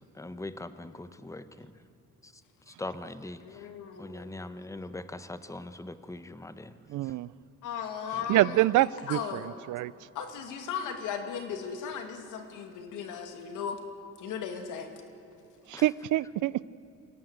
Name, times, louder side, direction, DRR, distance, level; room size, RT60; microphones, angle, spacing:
voice 1, 0.1-1.7 2.2-2.3 2.7-3.6 4.0-6.8 8.1-8.4 15.7-15.8, left 2 dB, 10° left, 1.1 m, -41 dB
voice 2, 3.4-4.3 7.6-9.5 10.1-13.8 14.2-14.9, left 7 dB, 90° left, 2.5 m, -37 dB
voice 3, 6.9-7.3 8.3-9.9 15.7-16.6, right 15 dB, 80° right, 0.6 m, -26 dB
24.5 x 17.0 x 8.0 m
cardioid pair, 90°, 30 cm